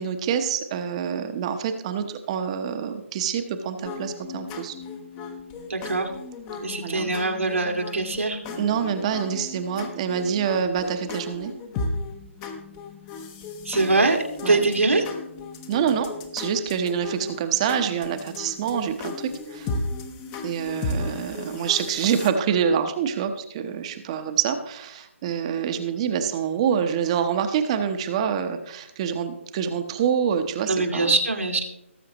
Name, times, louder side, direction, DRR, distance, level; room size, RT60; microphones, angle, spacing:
voice 1, 0.0-4.7 6.8-7.1 8.6-11.5 14.4-14.6 15.7-19.7 20.4-31.1, right 7 dB, 25° right, 8 dB, 0.9 m, -26 dB
sound 1, 3.8-22.3, left 3 dB, 15° left, 0.9 m, -35 dB
voice 2, 5.7-6.1 6.6-8.4 13.6-15.0 30.7-31.6, right 3 dB, 85° right, 1 dB, 2.1 m, -23 dB
18.5 x 7.5 x 3.0 m, 0.82 s
figure-of-eight pair, 150°, 7 cm